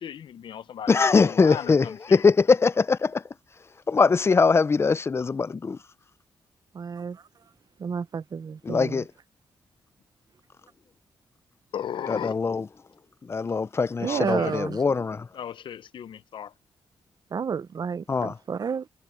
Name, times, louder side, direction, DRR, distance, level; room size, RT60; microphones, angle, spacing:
voice 1, 0.0-2.2 11.7-12.4 14.0-14.6 15.3-16.5, left 9 dB, 75° left, 0.8 m, -36 dB
voice 2, 0.9-3.2 3.9-5.8 8.6-9.0 12.1-12.7 13.3-15.2 18.1-18.3, left 4 dB, 30° left, 0.5 m, -22 dB
voice 3, 6.7-7.2 7.8-9.0 14.0-14.8 17.3-18.9, right 6 dB, 50° right, 0.7 m, -30 dB
cardioid pair, 85°, 9 cm